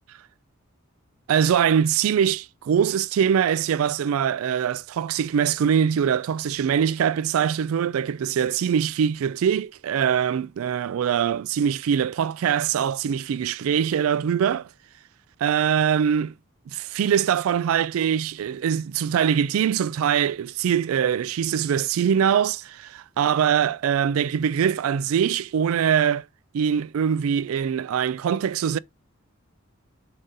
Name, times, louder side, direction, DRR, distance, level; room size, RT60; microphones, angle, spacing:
voice 1, 1.3-14.7 15.4-16.3 16.7-26.3 26.5-28.8, right 8 dB, 85° right, 0.3 m, -23 dB
7.3 x 2.7 x 5.2 m
head